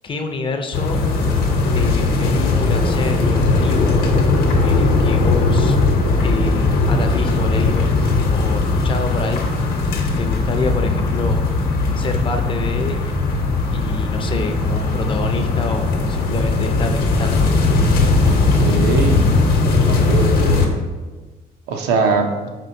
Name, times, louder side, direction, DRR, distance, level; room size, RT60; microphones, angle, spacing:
voice 1, 0.0-1.0 1.7-4.1 4.6-5.8 6.2-8.0 8.3-9.5 10.2-11.4 12.0-13.1 13.7-17.7, left 3 dB, 30° left, 6 dB, 0.5 m, -27 dB
sound 1, 0.7-20.7, left 3 dB, 65° left, 0.8 m, -18 dB
voice 2, 18.2-19.3 19.8-20.7 21.7-22.5, right 4 dB, 85° right, 4 dB, 0.6 m, -22 dB
4.3 x 4.2 x 2.6 m, 1.3 s
cardioid pair, 110°, 17 cm